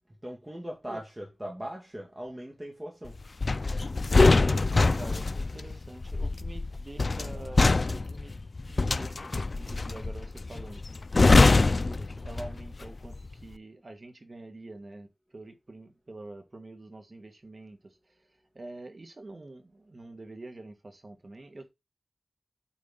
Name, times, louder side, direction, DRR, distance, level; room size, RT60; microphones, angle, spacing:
voice 1, 0.2-3.2, equal, 20° right, 2.3 m, -39 dB
sound 1, 3.4-12.8 13.0-13.3, left 3 dB, 55° left, 0.4 m, -24 dB
voice 2, 4.7-10.8 11.2-13.1 13.4-17.8 18.6-21.7, right 2 dB, 50° right, 1.8 m, -46 dB
8.7 x 4.7 x 3.9 m
wide cardioid pair, 70°, 0 cm